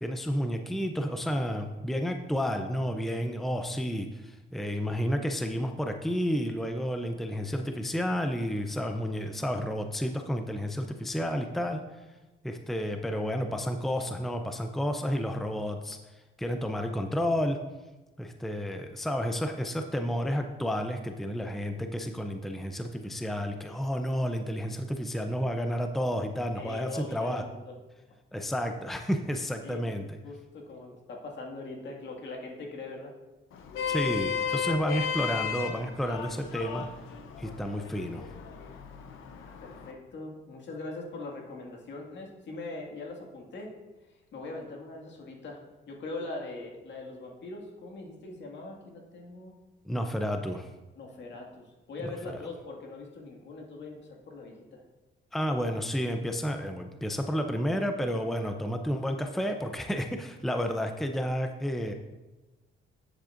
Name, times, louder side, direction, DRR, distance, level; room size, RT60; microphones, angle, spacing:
voice 1, 0.0-11.8 12.4-16.0 16.4-17.6 18.2-27.4 28.3-30.1 33.9-36.9 37.4-38.3 49.9-50.7 52.3-52.4 55.3-61.9, equal, ahead, 5 dB, 0.6 m, -31 dB
voice 2, 26.6-27.7 29.6-29.9 30.2-33.1 39.3-43.7 44.1-49.6 51.0-54.8 58.4-58.5, left 2 dB, 65° left, 0 dB, 2.0 m, -42 dB
Vehicle horn car horn honking, 33.5-39.9, left 7 dB, 85° left, 0.8 m, -35 dB
10.5 x 7.8 x 2.6 m, 1.1 s
cardioid pair, 90°, 20 cm